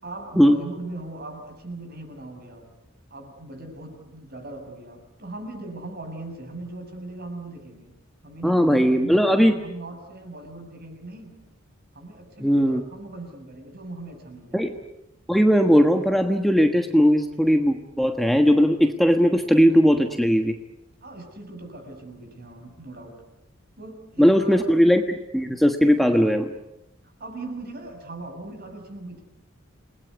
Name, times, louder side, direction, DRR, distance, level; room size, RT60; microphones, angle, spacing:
voice 1, 0.0-2.7 3.1-8.0 8.2-11.4 11.9-14.6 21.0-23.2 23.8-24.6 27.0-29.2, right 2 dB, 50° right, 5 dB, 7.2 m, -39 dB
voice 2, 8.4-9.5 12.4-12.8 14.5-14.7 15.3-20.5 24.2-26.5, equal, ahead, 5 dB, 1.3 m, -18 dB
29.0 x 20.5 x 9.5 m, 0.89 s
head